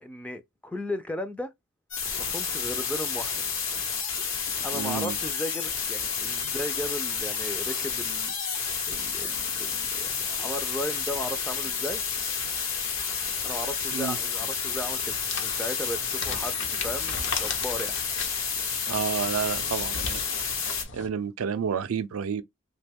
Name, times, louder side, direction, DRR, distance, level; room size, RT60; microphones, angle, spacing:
voice 1, 0.0-1.5 2.2-3.4 4.6-8.3 8.9-12.0 13.4-18.0, left 1 dB, 5° left, 0.3 m, -36 dB
sound 1, 1.9-20.8, left 6 dB, 80° left, 0.9 m, -30 dB
voice 2, 4.7-5.2 6.4-6.6 13.9-14.2 18.9-20.2 20.9-22.4, right 7 dB, 90° right, 0.4 m, -30 dB
sound 2, 14.4-21.1, left 5 dB, 60° left, 0.6 m, -37 dB
2.9 x 2.2 x 3.4 m
head